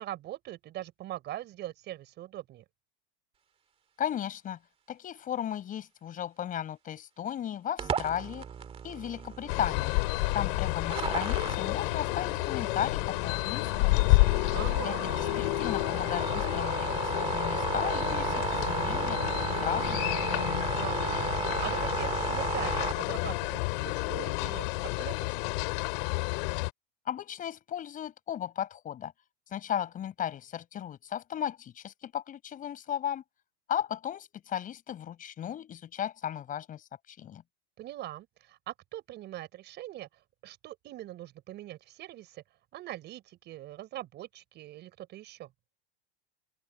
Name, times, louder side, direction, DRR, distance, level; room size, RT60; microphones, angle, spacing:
voice 1, 0.0-2.6 14.5-15.1 20.8-25.6 37.8-40.1 40.4-42.4 42.7-45.5, right 14 dB, 35° right, 6.0 m, -42 dB
voice 2, 4.0-4.6 4.9-8.4 8.8-10.0 10.3-14.3 14.8-19.2 19.6-20.2 27.1-29.1 29.5-33.2 33.7-37.4, left 10 dB, 25° left, 5.8 m, -35 dB
sound 1, 7.8-22.9, right 7 dB, 20° right, 2.0 m, -35 dB
sound 2, 9.5-26.7, left 29 dB, 55° left, 7.1 m, -30 dB
open air
supercardioid pair, 155°, 31 cm